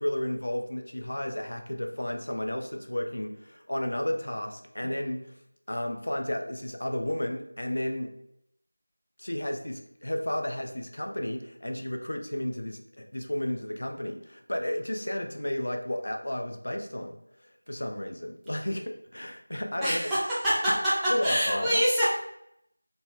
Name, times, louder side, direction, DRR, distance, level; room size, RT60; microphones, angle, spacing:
voice 1, 0.0-5.3 5.7-8.1 9.2-17.2 17.7-20.0 21.1-21.8, left 1 dB, 65° left, 4 dB, 0.5 m, -32 dB
voice 2, 19.8-20.2 20.4-22.1, equal, 5° right, -13 dB, 0.4 m, -25 dB
3.0 x 2.3 x 2.9 m, 0.76 s
figure-of-eight pair, 175°, 0 cm